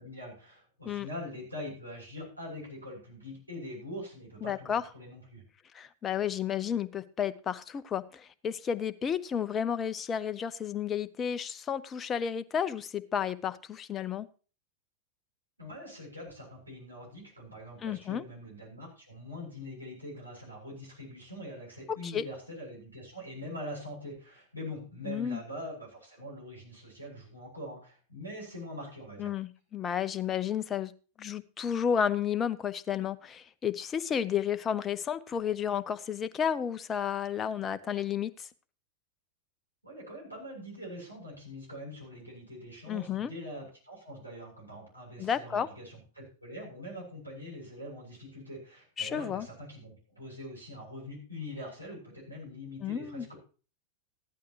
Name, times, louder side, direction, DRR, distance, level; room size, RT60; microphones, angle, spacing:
voice 1, 0.0-5.4 15.6-29.3 39.8-53.4, left 1 dB, 90° right, -4 dB, 7.4 m, -43 dB
voice 2, 4.4-4.8 5.7-14.3 17.8-18.2 21.9-22.3 25.1-25.4 29.2-30.9 31.2-38.5 42.9-43.3 45.2-45.7 49.0-49.5 52.8-53.3, left 8 dB, 25° left, 14 dB, 0.7 m, -32 dB
15.0 x 11.5 x 3.1 m, 0.36 s
figure-of-eight pair, 90°, 0 cm